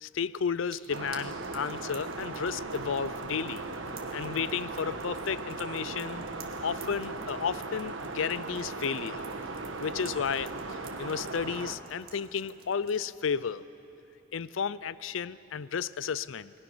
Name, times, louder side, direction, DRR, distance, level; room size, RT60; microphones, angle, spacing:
voice 1, 0.0-3.7 4.1-6.2 6.6-9.2 9.8-13.6 14.3-16.5, left 6 dB, 75° left, 17 dB, 0.5 m, -33 dB
sound 1, 0.7-13.0, right 8 dB, 50° right, 2.0 m, -54 dB
sound 2, 0.9-11.8, right 3 dB, 75° right, 1.3 m, -38 dB
28.5 x 20.0 x 6.2 m, 3.0 s
head